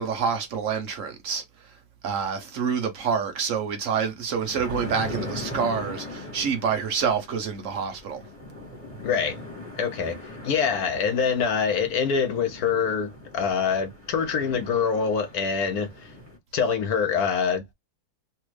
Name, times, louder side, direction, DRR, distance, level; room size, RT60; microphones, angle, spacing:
voice 1, 0.0-1.4 2.0-8.2, right 6 dB, 60° right, 0.9 m, -27 dB
sound 1, 4.3-16.4, left 1 dB, 10° right, 1.2 m, -40 dB
voice 2, 9.0-9.4 9.8-10.2 10.4-16.1 16.5-17.6, left 6 dB, 65° left, 1.0 m, -25 dB
3.4 x 2.4 x 3.1 m
omnidirectional pair, 2.0 m